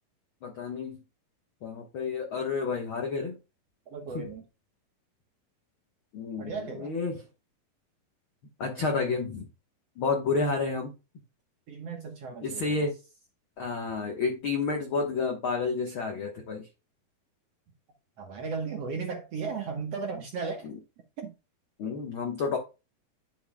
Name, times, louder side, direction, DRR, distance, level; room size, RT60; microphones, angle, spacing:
voice 1, 0.4-1.0 1.6-3.4 4.1-4.2 6.1-7.2 8.6-9.5 10.0-10.9 12.4-13.0 13.6-16.7 20.6-20.8 21.8-22.6, left 4 dB, 85° left, 1.1 m, -30 dB
voice 2, 3.9-4.4 6.4-6.9 11.7-12.9 18.2-20.7 21.2-21.3, right 5 dB, 65° right, 1.6 m, -35 dB
10.5 x 7.1 x 2.2 m
omnidirectional pair, 4.3 m